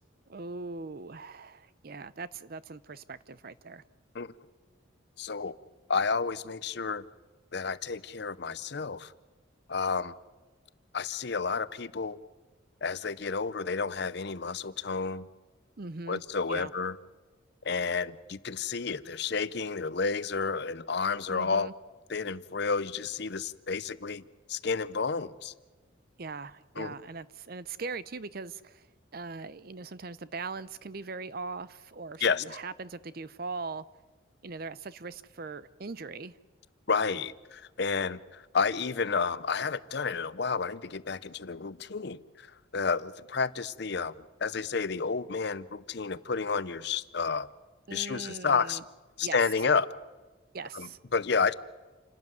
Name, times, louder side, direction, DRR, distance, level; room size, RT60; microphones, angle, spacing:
voice 1, 0.3-3.8 15.8-16.2 16.5-16.7 21.3-21.7 26.2-28.9 29.1-33.8 34.4-36.4 47.9-48.8 49.2-49.6 50.5-51.0, right 4 dB, 45° right, 16 dB, 0.6 m, -40 dB
voice 2, 5.2-5.6 5.9-7.0 7.5-9.1 9.7-10.1 10.9-12.2 12.8-15.3 16.1-17.0 17.6-21.7 22.1-24.2 24.5-25.5 26.8-26.9 32.2-32.4 36.9-42.5 42.7-44.1 44.4-47.5 47.9-48.8 49.2-49.9 50.7-51.5, left 5 dB, 55° left, 17 dB, 0.6 m, -30 dB
28.5 x 12.5 x 9.4 m, 1.3 s
head